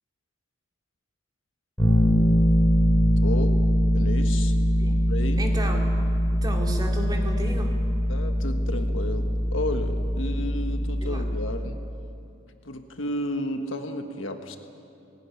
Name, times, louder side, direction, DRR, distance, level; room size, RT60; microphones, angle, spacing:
Bass guitar, 1.8-11.7, equal, 15° left, 7.3 m, -22 dB
voice 1, 3.2-3.6 3.9-4.5 5.1-5.4 8.1-11.8 12.6-14.6, left 1 dB, 75° left, 6 dB, 1.5 m, -32 dB
voice 2, 5.4-6.0 6.3-7.8 11.0-11.2, right 1 dB, 20° right, 1 dB, 2.6 m, -33 dB
19.5 x 17.0 x 9.9 m, 2.7 s
head